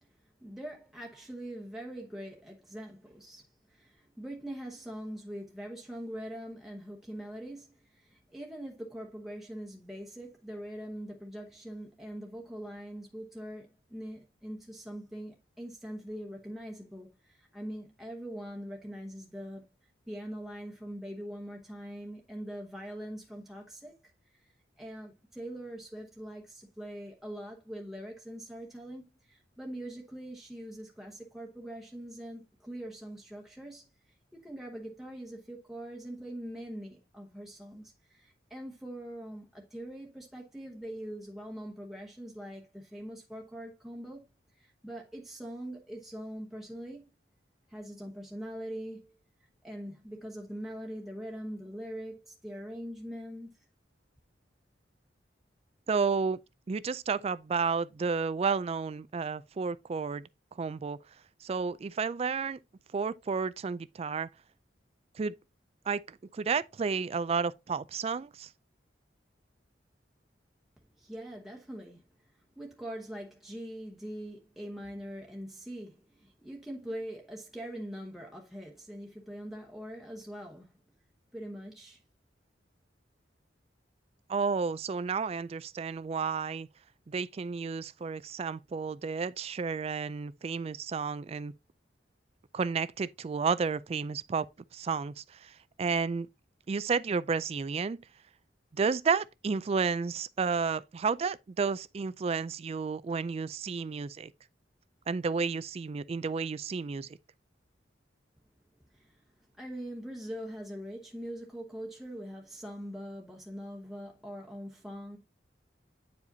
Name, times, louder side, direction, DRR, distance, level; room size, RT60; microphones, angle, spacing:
voice 1, 0.4-19.7 20.1-23.9 24.3-24.5 24.8-44.3 44.6-47.1 47.7-49.1 49.6-53.5 71.0-72.1 72.6-80.7 81.3-82.0 108.9-109.2 109.6-115.2, equal, ahead, 1.0 m, -43 dB
voice 2, 55.9-56.4 56.7-60.3 60.6-61.0 61.4-62.6 62.9-64.3 65.2-65.3 65.9-68.5 84.3-86.7 87.1-91.5 92.5-94.5 94.7-96.3 96.7-98.0 98.7-104.3 105.1-107.2, right 5 dB, 35° right, 0.3 m, -31 dB
9.4 x 4.9 x 2.7 m
head